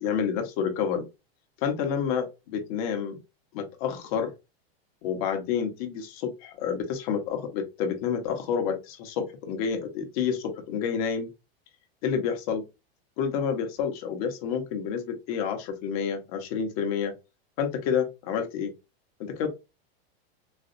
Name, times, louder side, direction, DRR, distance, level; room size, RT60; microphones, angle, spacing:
voice 1, 0.0-1.0 1.6-3.1 3.5-4.3 5.0-11.3 12.0-12.6 13.2-17.1 17.6-18.7 19.2-19.5, left 7 dB, 40° left, 5 dB, 0.8 m, -29 dB
4.1 x 2.2 x 2.5 m, 0.25 s
supercardioid pair, 175°, 30 cm